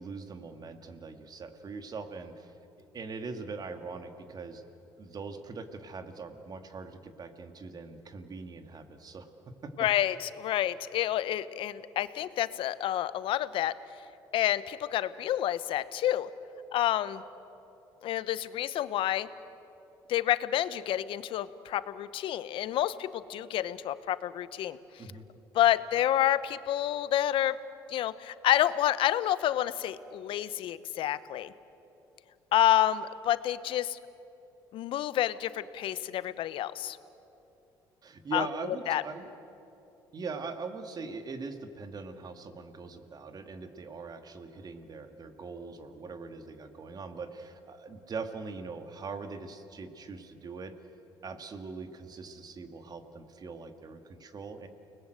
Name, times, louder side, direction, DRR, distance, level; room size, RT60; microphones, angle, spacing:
voice 1, 0.0-2.6 2.9-4.6 5.0-9.9 25.0-25.2 38.0-39.3 40.1-50.7 51.2-54.7, right 4 dB, 45° right, 7 dB, 2.4 m, -41 dB
voice 2, 9.8-13.7 14.3-16.3 16.7-17.2 18.0-19.3 20.1-24.8 25.5-27.6 27.9-31.5 32.5-34.0 34.7-37.0 38.3-38.5 38.9-39.0, left 12 dB, 65° left, 15 dB, 1.0 m, -29 dB
30.0 x 20.0 x 8.0 m, 2.9 s
supercardioid pair, 70°, 10 cm